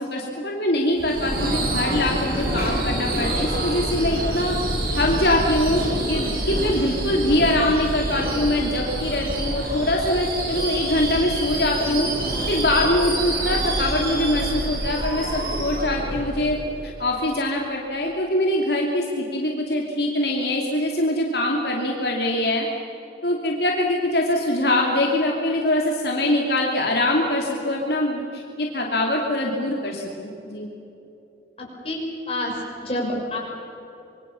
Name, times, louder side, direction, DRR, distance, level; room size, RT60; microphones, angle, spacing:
voice 1, 0.0-4.6 4.9-5.8 6.1-12.1 12.5-16.6 16.8-22.7 23.2-30.7, left 1 dB, 70° left, 0 dB, 2.7 m, -23 dB
Subway metro underground / Screech, 1.0-16.9, right 1 dB, 55° right, 5.4 m, -27 dB
voice 2, 32.3-33.4, left 1 dB, 35° left, -2 dB, 6.5 m, -27 dB
26.5 x 22.5 x 7.0 m, 2.9 s
head